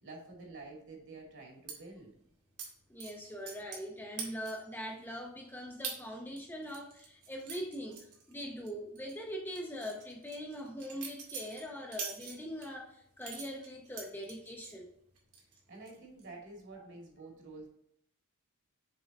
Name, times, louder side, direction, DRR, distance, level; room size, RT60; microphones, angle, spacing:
voice 1, 0.0-2.1 15.7-17.7, right 3 dB, 55° right, -1 dB, 2.2 m, -49 dB
sound 1, 1.7-1.8 2.6-2.7 3.0-3.9 4.2-4.7 5.1-5.2 5.8-6.0 6.4-8.7 9.0-9.1 9.6-12.7 13.2-14.8 15.2-15.6 15.9-16.2, right 5 dB, 80° right, 2.0 m, -44 dB
voice 2, 2.9-14.9, equal, 10° left, 1 dB, 0.7 m, -42 dB
7.2 x 3.8 x 4.1 m, 0.74 s
head